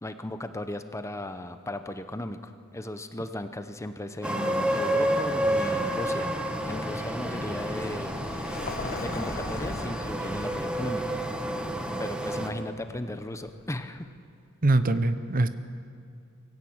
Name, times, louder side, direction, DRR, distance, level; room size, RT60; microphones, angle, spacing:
voice 1, 0.0-6.3 6.6-8.1 8.7-11.2 12.0-14.1, left 1 dB, 15° left, 9 dB, 0.8 m, -36 dB
sound 1, 4.2-12.5, right 1 dB, 5° right, 1.4 m, -30 dB
Vehicle, 5.1-13.9, left 2 dB, 45° left, 1.6 m, -42 dB
voice 2, 14.6-15.5, right 2 dB, 40° right, 11 dB, 0.8 m, -23 dB
23.5 x 15.0 x 8.8 m, 2.4 s
head